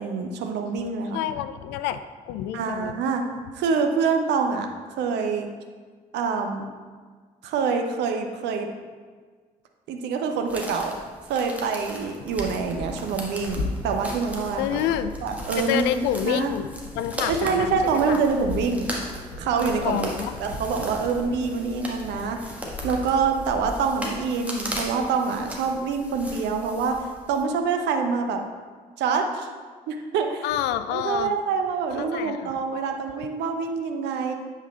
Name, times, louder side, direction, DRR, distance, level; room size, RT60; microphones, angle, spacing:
voice 1, 0.0-1.2 2.5-3.3 3.5-4.7 5.0-5.5 6.1-6.6 7.4-8.7 9.9-10.9 11.3-14.8 15.2-16.5 17.3-18.9 19.4-20.1 20.4-22.5 22.8-28.4 29.0-29.5 29.9-30.4 30.9-34.3, right 5 dB, 60° right, 4 dB, 0.7 m, -26 dB
voice 2, 1.1-3.1 14.6-15.1 15.6-16.7 16.9-18.2 19.8-20.4 30.4-31.3 32.0-32.6, left 11 dB, 60° left, 12 dB, 0.4 m, -28 dB
sound 1, 10.5-27.4, right 1 dB, 5° right, 1.5 m, -38 dB
sound 2, 12.2-23.5, left 2 dB, 75° left, 0.8 m, -38 dB
8.0 x 4.0 x 4.1 m, 1.5 s
figure-of-eight pair, 40°, 20 cm